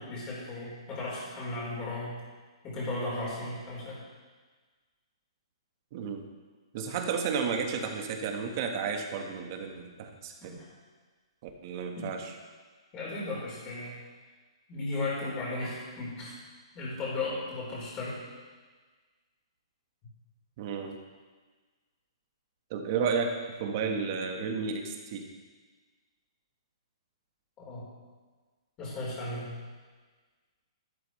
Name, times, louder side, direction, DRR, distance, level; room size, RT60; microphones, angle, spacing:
voice 1, 0.0-2.1 2.6-4.0 10.4-10.7 12.0-12.1 12.9-14.0 14.7-16.3 16.7-18.2 27.7-27.9 28.8-29.5, left 2 dB, 20° left, -6 dB, 4.1 m, -35 dB
voice 2, 5.9-6.2 6.7-10.6 11.4-12.3 20.6-21.0 22.7-25.3, right 5 dB, 35° right, 4 dB, 1.3 m, -32 dB
12.5 x 12.0 x 3.2 m, 1.4 s
hypercardioid pair, 160°, 3 cm